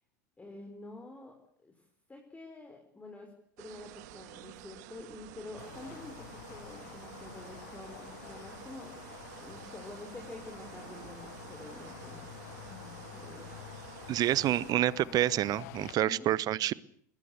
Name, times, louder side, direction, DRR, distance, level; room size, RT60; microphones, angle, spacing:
voice 1, 0.4-1.3 1.6-1.7 2.1-3.3 3.6-8.9 9.4-13.5 15.0-15.3 16.0-16.3, left 2 dB, 15° left, 2 dB, 4.6 m, -48 dB
sound 1, 3.6-14.7, right 16 dB, 65° right, 1.4 m, -50 dB
sound 2, 5.6-16.0, left 16 dB, 65° left, 1.2 m, -49 dB
voice 2, 14.1-16.7, right 13 dB, 40° right, 22 dB, 0.9 m, -28 dB
21.5 x 19.5 x 8.3 m, 0.65 s
hypercardioid pair, 85°, 10 cm